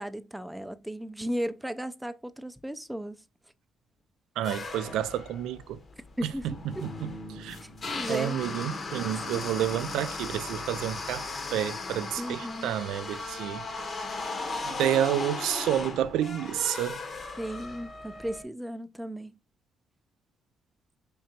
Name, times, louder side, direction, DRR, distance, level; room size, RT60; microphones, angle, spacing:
voice 1, 0.0-3.2 6.2-6.5 6.8-6.9 7.6-7.7 7.9-8.4 9.1-9.2 12.2-12.7 17.4-19.3, equal, 5° right, 0.3 m, -35 dB
sound 1, 4.4-18.4, left 3 dB, 40° left, 0.7 m, -37 dB
voice 2, 4.4-5.8 6.2-7.6 8.1-13.6 14.6-17.0, right 11 dB, 90° right, 0.3 m, -30 dB
3.8 x 3.3 x 2.7 m
cardioid pair, 90°, 0 cm